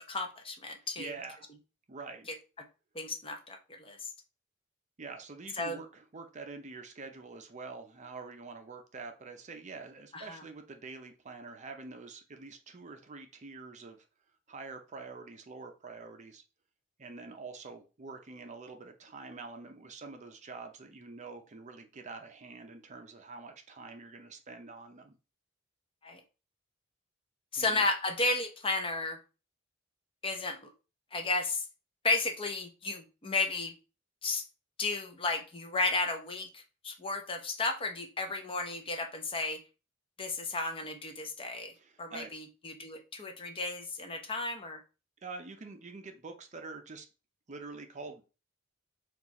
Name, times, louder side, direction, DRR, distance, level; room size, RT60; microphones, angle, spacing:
voice 1, 0.0-1.1 2.9-4.1 5.6-5.8 10.1-10.4 26.0-26.2 27.5-29.2 30.2-30.7 31.1-31.6 32.0-33.7 34.2-34.4 34.8-39.6 40.2-41.7 42.0-44.8, left 3 dB, 25° left, 5 dB, 0.6 m, -33 dB
voice 2, 1.0-1.4 1.9-2.3 5.0-14.0 14.5-16.4 17.0-25.1 27.6-27.9 41.7-42.3 45.2-47.1 47.5-48.2, right 4 dB, 35° right, 6 dB, 0.6 m, -46 dB
4.3 x 2.4 x 4.0 m, 0.32 s
head